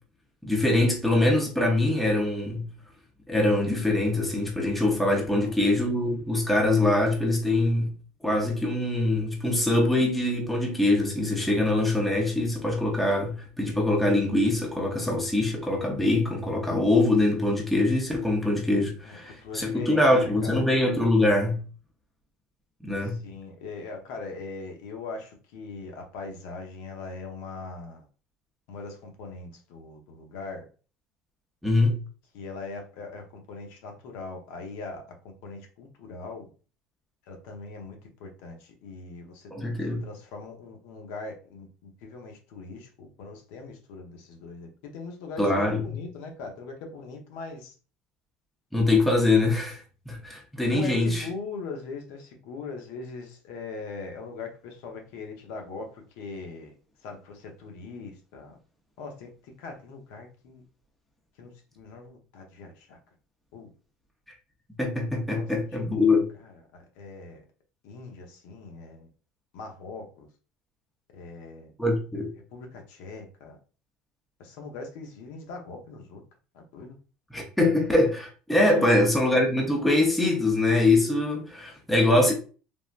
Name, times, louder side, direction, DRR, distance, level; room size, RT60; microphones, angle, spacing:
voice 1, 0.4-2.7 3.3-7.9 8.2-21.6 22.8-23.2 31.6-31.9 39.5-40.0 45.4-45.9 48.7-51.3 64.8-66.3 71.8-72.3 77.3-82.3, left 2 dB, ahead, 0.7 m, -23 dB
voice 2, 19.0-20.6 23.0-28.1 28.7-30.7 32.3-35.0 35.4-36.5 37.3-39.5 40.0-47.7 50.7-56.7 57.0-58.6 59.0-59.3 59.6-60.6 61.4-61.5 61.8-63.0 63.5-63.7 65.3-65.4 65.9-66.0 66.4-67.4 67.8-69.1 69.5-70.3 71.1-71.7 72.5-73.6 74.4-76.2 76.5-76.9 78.7-79.0, left 3 dB, 80° left, 0.8 m, -41 dB
3.5 x 2.1 x 2.4 m
supercardioid pair, 95°, 3 cm